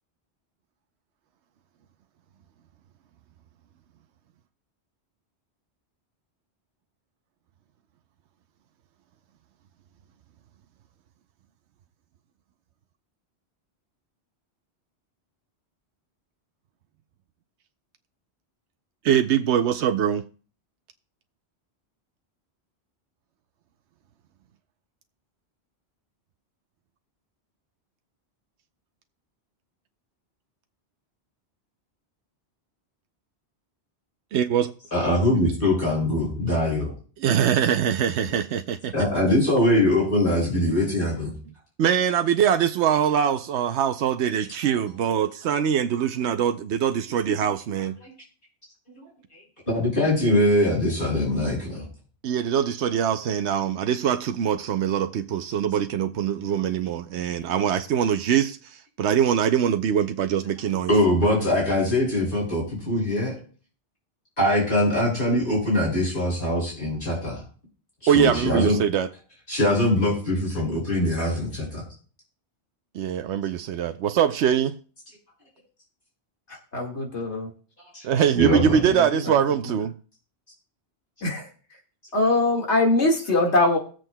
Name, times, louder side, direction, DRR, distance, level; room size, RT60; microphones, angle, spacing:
voice 1, 19.0-20.2 34.3-34.7 37.2-39.1 41.8-48.0 52.2-58.6 59.0-60.9 68.1-69.1 72.9-74.7 78.0-79.9, right 8 dB, 85° right, 0.9 m, -23 dB
voice 2, 34.9-36.9 38.9-41.3 48.0-48.1 49.0-49.4 49.7-51.9 57.4-57.5 60.9-63.3 64.4-67.4 68.0-68.8 69.5-71.8 77.9-78.1 78.4-78.8, left 1 dB, 55° left, 6.4 m, -22 dB
voice 3, 76.7-77.5 78.5-79.1 81.2-81.5 82.1-83.8, left 2 dB, 85° left, 2.2 m, -22 dB
22.5 x 7.6 x 2.2 m
omnidirectional pair, 1.1 m